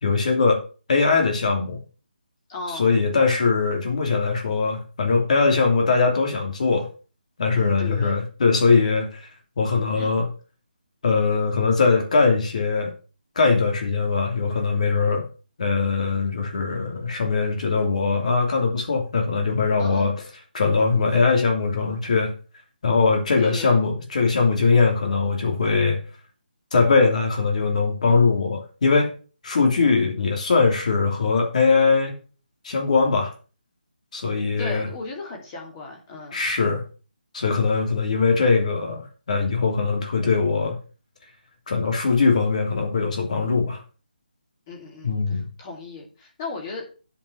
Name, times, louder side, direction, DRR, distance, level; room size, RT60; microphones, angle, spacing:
voice 1, 0.0-0.6 0.9-1.8 2.7-6.9 7.4-9.3 9.6-10.3 11.0-12.9 13.3-15.3 15.6-20.1 20.5-22.3 22.8-26.0 26.7-29.1 29.4-32.1 32.6-33.3 34.1-34.9 36.3-36.8 37.3-40.7 41.7-43.8 45.0-45.5, left 4 dB, 45° left, 3 dB, 3.0 m, -21 dB
voice 2, 2.5-2.9 7.5-8.3 9.9-10.2 19.8-20.1 23.4-23.8 34.6-36.4 44.7-46.9, left 3 dB, 20° left, 0 dB, 3.0 m, -36 dB
10.5 x 5.4 x 7.0 m, 0.36 s
hypercardioid pair, 170°, 5 cm